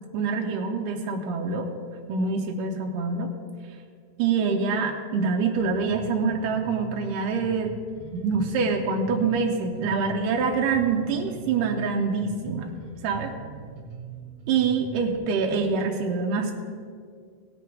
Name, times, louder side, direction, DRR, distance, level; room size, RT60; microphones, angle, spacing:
voice 1, 0.1-1.7 2.1-3.3 4.2-7.7 8.1-12.7 13.0-13.3 14.5-16.5, right 5 dB, 80° right, 1 dB, 1.9 m, -25 dB
Bass guitar, 5.6-15.2, right 5 dB, 65° right, 1.5 m, -42 dB
17.5 x 6.6 x 4.7 m, 2.1 s
omnidirectional pair, 4.6 m